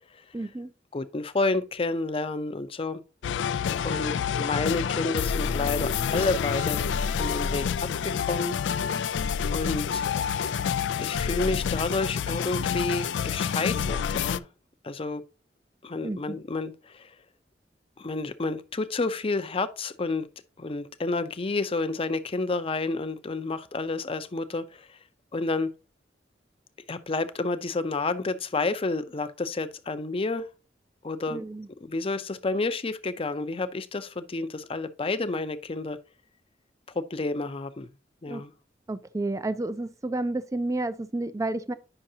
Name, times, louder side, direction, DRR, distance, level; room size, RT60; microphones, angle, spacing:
voice 1, 0.3-0.7 16.0-16.4 31.3-31.7 38.3-38.4 38.9-41.7, right 2 dB, 20° right, 0.4 m, -31 dB
voice 2, 0.9-3.0 3.8-6.8 7.1-7.7 8.0-8.6 9.5-10.1 11.0-14.5 14.8-15.2 15.8-17.1 18.0-20.3 20.6-25.0 25.3-25.7 26.9-30.5 31.0-31.4 31.8-36.0 36.9-37.9 38.2-38.5, left 3 dB, 30° left, 0.5 m, -30 dB
sound 1, 3.2-14.4, left 7 dB, 90° left, 0.3 m, -28 dB
8.8 x 5.7 x 2.7 m
head